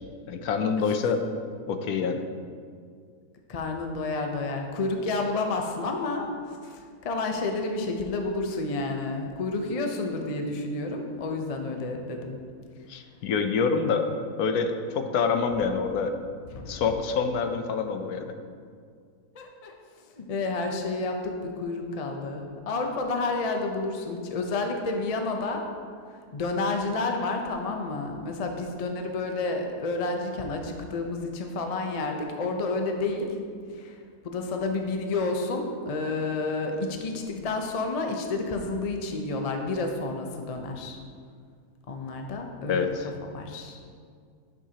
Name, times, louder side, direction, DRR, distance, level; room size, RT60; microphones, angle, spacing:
voice 1, 0.3-1.2 1.7-2.2 12.9-14.1 14.4-16.1 16.7-18.2 42.7-43.1, left 5 dB, 75° left, 7 dB, 1.0 m, -26 dB
voice 2, 3.5-6.3 6.6-12.4 16.5-16.8 19.3-19.7 20.2-25.7 26.3-33.3 33.7-34.0 34.2-41.0 41.9-42.9 43.2-43.8, left 3 dB, 55° left, 3 dB, 0.4 m, -30 dB
10.0 x 6.6 x 2.8 m, 2.1 s
omnidirectional pair, 1.7 m